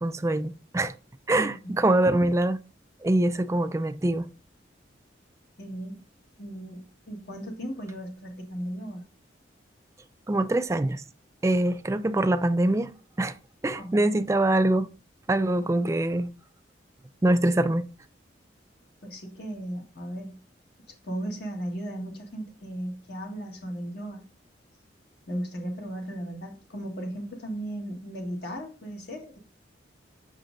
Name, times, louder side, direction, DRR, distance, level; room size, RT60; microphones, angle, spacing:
voice 1, 0.0-0.9 1.3-2.6 3.0-4.3 10.3-11.0 11.4-12.9 13.2-13.3 13.6-14.9 15.3-16.3 17.2-17.9, right 1 dB, 15° right, 0.3 m, -24 dB
voice 2, 1.3-1.9 5.6-6.0 6.4-9.1 13.8-14.2 19.0-20.4 20.9-24.2 25.3-29.4, right 1 dB, 60° left, 1.8 m, -36 dB
7.4 x 6.2 x 2.6 m
head